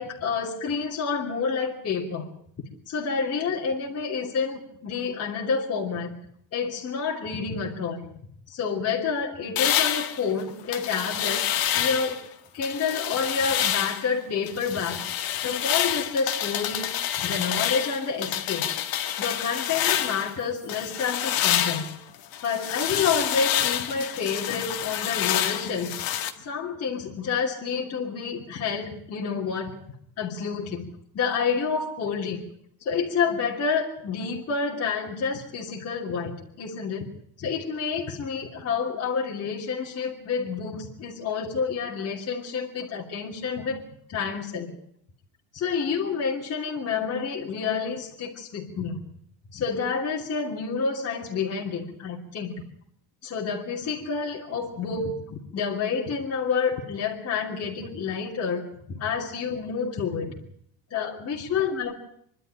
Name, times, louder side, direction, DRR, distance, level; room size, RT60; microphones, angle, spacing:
voice 1, 0.0-2.3 2.9-6.1 6.5-8.1 8.5-11.4 11.8-12.2 12.5-15.0 15.4-16.9 17.2-18.7 19.2-21.9 22.4-25.9 26.4-29.7 30.2-30.9 31.1-32.4 32.8-37.1 37.4-43.8 44.1-44.7 45.5-49.0 49.5-52.5 53.2-58.6 58.9-60.3 60.9-61.9, left 5 dB, 35° left, -2 dB, 2.9 m, -29 dB
sound 1, 9.6-12.2 12.6-14.1 14.5-20.3 20.7-26.3, left 11 dB, 55° left, 2.0 m, -28 dB
25.5 x 12.0 x 10.0 m, 0.70 s
cardioid pair, 145°, 41 cm